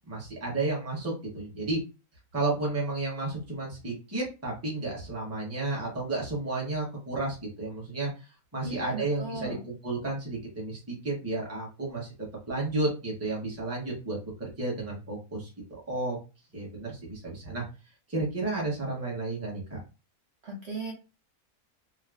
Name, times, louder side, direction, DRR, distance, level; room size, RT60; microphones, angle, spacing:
voice 1, 0.1-1.8 2.3-8.1 8.5-15.5 15.9-16.2 16.5-17.6 18.1-19.8, right 2 dB, 10° right, -3 dB, 0.8 m, -32 dB
voice 2, 8.6-9.6 20.4-20.9, right 3 dB, 55° right, -3 dB, 0.9 m, -37 dB
3.3 x 2.1 x 2.4 m, 0.30 s
omnidirectional pair, 1.6 m